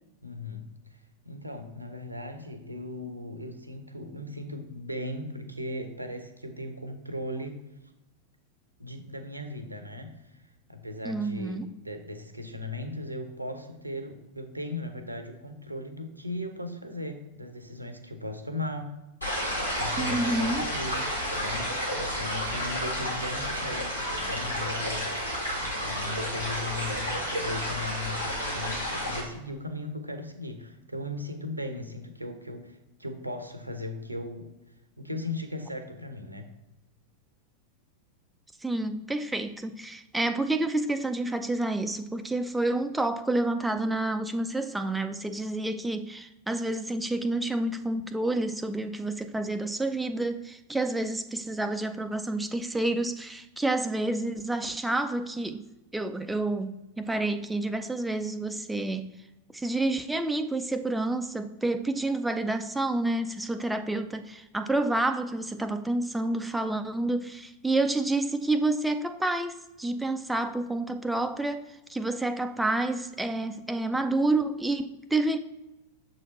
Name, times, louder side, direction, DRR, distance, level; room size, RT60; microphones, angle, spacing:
voice 1, 0.2-1.0 1.2-7.6 8.8-10.4 10.7-18.9 19.8-21.0 21.3-25.3 25.5-34.5 35.0-36.5, left 1 dB, 85° right, 0.9 m, -37 dB
voice 2, 11.0-11.7 20.0-20.7 38.6-55.7 55.9-59.1 59.5-75.4, right 2 dB, 5° right, 0.4 m, -29 dB
sound 1, 19.2-29.2, equal, 85° left, 2.2 m, -31 dB
7.2 x 4.2 x 4.1 m
figure-of-eight pair, 90°, 0 cm